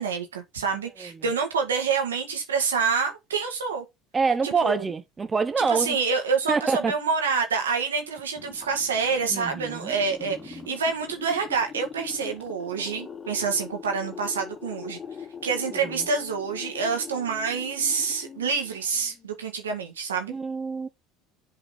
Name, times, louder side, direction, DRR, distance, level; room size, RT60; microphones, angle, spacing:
voice 1, 0.0-3.9 4.4-4.8 5.6-15.0 15.4-20.3, right 5 dB, 85° right, 1.7 m, -27 dB
voice 2, 4.1-6.0 6.5-6.9 9.3-9.9 10.5-10.7 15.8-16.0 20.3-20.9, right 4 dB, 25° right, 0.7 m, -26 dB
sound 1, 8.2-19.3, left 6 dB, 25° left, 2.4 m, -42 dB
7.7 x 4.0 x 4.1 m
hypercardioid pair, 70°, 0 cm